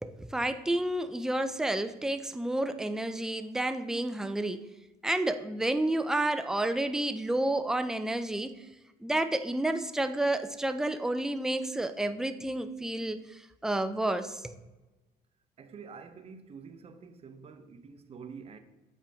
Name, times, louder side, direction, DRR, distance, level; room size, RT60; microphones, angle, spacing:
voice 1, 0.0-4.7 5.0-8.7 9.0-14.5, right 1 dB, 5° right, 0.4 m, -30 dB
voice 2, 15.6-18.6, right 5 dB, 35° right, 0.7 m, -47 dB
7.6 x 4.4 x 3.5 m
cardioid pair, 110°, 17 cm